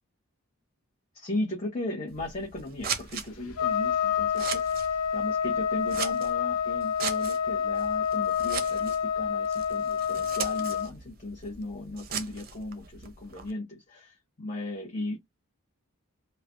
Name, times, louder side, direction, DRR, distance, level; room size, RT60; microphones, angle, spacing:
voice 1, 1.1-15.2, left 1 dB, 30° left, 0.8 m, -37 dB
Scissors, 2.1-13.5, right 7 dB, 40° right, 0.5 m, -39 dB
Trumpet, 3.6-10.9, left 7 dB, 85° left, 0.9 m, -28 dB
3.1 x 2.1 x 2.4 m
head